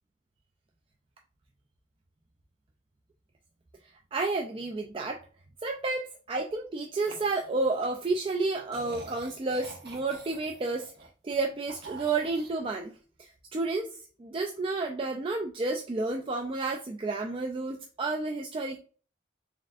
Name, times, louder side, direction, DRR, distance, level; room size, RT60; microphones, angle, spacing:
voice 1, 4.1-5.2 5.6-10.9 11.2-13.9 14.2-18.8, right 3 dB, 30° right, 2 dB, 0.3 m, -31 dB
sound 1, 7.1-8.2 8.7-11.4 11.7-12.5, right 3 dB, 55° right, 1.0 m, -47 dB
4.1 x 3.5 x 2.4 m, 0.40 s
head